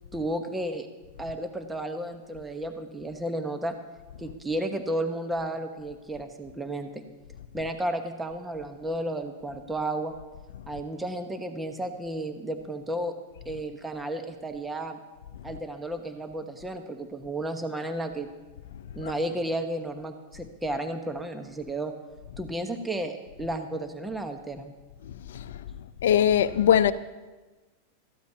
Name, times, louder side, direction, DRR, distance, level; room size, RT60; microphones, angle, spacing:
voice 1, 0.1-0.9 1.2-3.7 4.2-7.0 7.5-10.1 10.7-13.1 13.4-15.0 15.4-18.3 18.9-21.9 22.4-24.7, right 1 dB, 10° right, 1.1 m, -33 dB
voice 2, 26.0-26.9, left 10 dB, 75° left, 0.5 m, -21 dB
18.0 x 14.5 x 2.8 m
hypercardioid pair, 105°, 0 cm